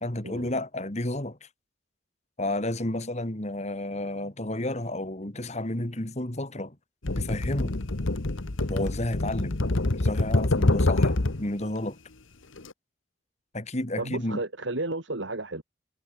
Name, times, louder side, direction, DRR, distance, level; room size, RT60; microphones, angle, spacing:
voice 1, 0.0-1.5 2.4-6.8 7.2-7.8 8.7-9.6 9.9-12.0 13.5-14.4, left 1 dB, 35° left, 2.2 m, -31 dB
sound 1, 7.0-11.5 12.6-12.7, left 2 dB, 80° left, 1.4 m, -25 dB
voice 2, 14.0-15.6, right 2 dB, 70° right, 2.4 m, -32 dB
head